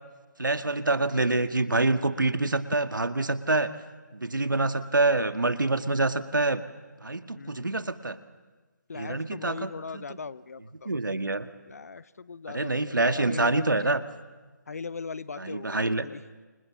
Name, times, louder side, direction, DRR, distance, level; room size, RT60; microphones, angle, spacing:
voice 1, 0.4-3.7 4.1-6.6 7.0-8.2 8.9-10.0 10.9-11.5 12.5-14.0 15.4-16.1, right 2 dB, 80° right, 9 dB, 1.8 m, -26 dB
voice 2, 7.4-7.7 8.9-10.9 11.7-14.0 14.7-16.2, left 4 dB, 50° left, 17 dB, 0.9 m, -39 dB
28.5 x 28.0 x 7.4 m, 1.3 s
figure-of-eight pair, 160°, 10 cm